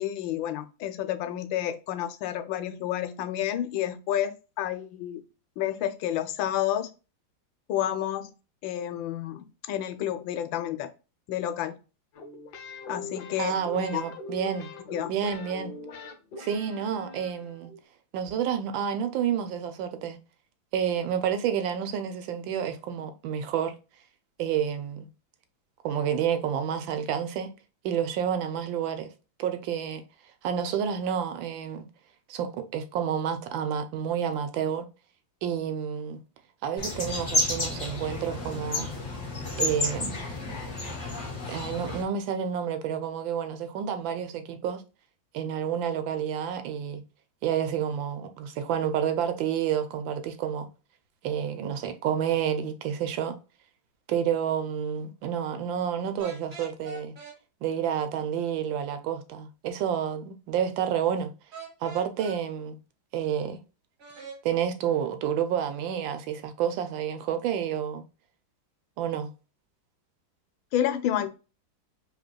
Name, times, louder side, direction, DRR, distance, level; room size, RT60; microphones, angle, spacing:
voice 1, 0.0-5.2 5.6-6.9 7.7-8.3 8.6-10.9 11.3-11.8 12.9-14.0 14.9-15.1 70.7-71.3, left 11 dB, 85° left, 1.4 m, -30 dB
sound 1, 12.1-17.8, left 3 dB, 65° left, 1.3 m, -42 dB
voice 2, 13.4-14.7 15.1-15.7 16.4-17.7 18.1-20.2 20.7-23.8 24.4-25.1 25.8-27.5 27.8-29.1 29.4-30.0 30.4-31.9 32.3-34.9 35.4-36.2 36.6-38.9 39.6-40.2 41.5-44.8 45.3-47.0 47.4-50.7 51.2-53.4 54.1-57.2 57.6-61.3 61.8-62.8 63.1-63.6 64.4-68.0 69.0-69.3, right 8 dB, 85° right, 1.4 m, -29 dB
sound 2, 36.8-42.0, left 2 dB, 30° left, 1.4 m, -31 dB
sound 3, 56.2-57.4 61.5-62.4 64.0-64.4, right 3 dB, 45° right, 1.7 m, -42 dB
5.0 x 3.4 x 2.3 m
omnidirectional pair, 2.0 m